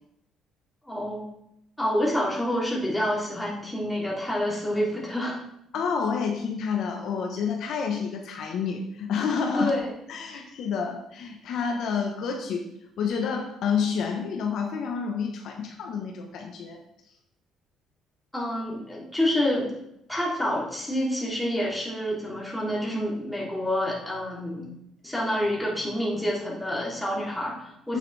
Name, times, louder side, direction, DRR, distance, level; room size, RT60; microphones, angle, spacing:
voice 1, 0.9-1.3 1.8-5.4 9.6-9.9 10.3-10.4 18.3-19.7 20.1-24.7 25.0-28.0, left 1 dB, 5° left, -4 dB, 3.1 m, -28 dB
voice 2, 5.7-12.7 13.0-16.8 27.9-28.0, left 6 dB, 70° left, 3 dB, 1.1 m, -29 dB
8.7 x 7.6 x 3.4 m, 0.80 s
cardioid pair, 95°, 0 cm